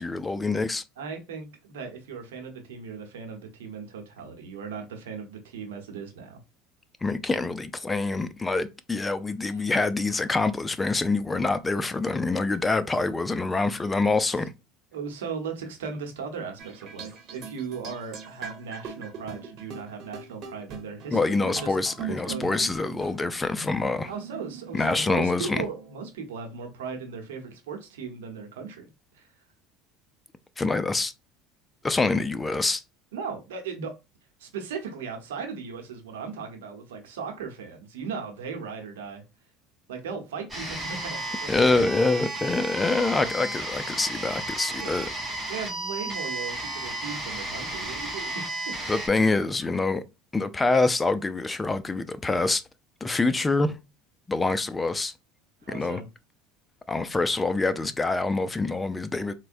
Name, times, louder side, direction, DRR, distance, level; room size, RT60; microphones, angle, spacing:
voice 1, 0.0-0.8 7.0-14.5 21.1-24.1 24.7-25.6 30.6-31.1 31.8-32.8 41.5-45.1 48.9-50.0 50.3-52.6 53.0-53.8 54.3-55.1 55.7-56.0 56.9-59.3, left 3 dB, 15° left, 0.4 m, -25 dB
voice 2, 1.0-6.4 9.5-9.6 14.9-21.8 22.1-22.6 24.0-28.9 29.1-29.3 33.1-33.9 34.4-39.2 39.9-41.8 44.8-45.0 45.4-48.8 55.6-56.1, right 5 dB, 90° right, 0.9 m, -37 dB
Whipped and Gated Bounce Keys, 16.6-26.0, right 5 dB, 50° right, 1.1 m, -41 dB
sound 1, 40.5-49.1, right 1 dB, 15° right, 2.1 m, -33 dB
4.4 x 2.1 x 2.5 m
supercardioid pair, 95°, 0 cm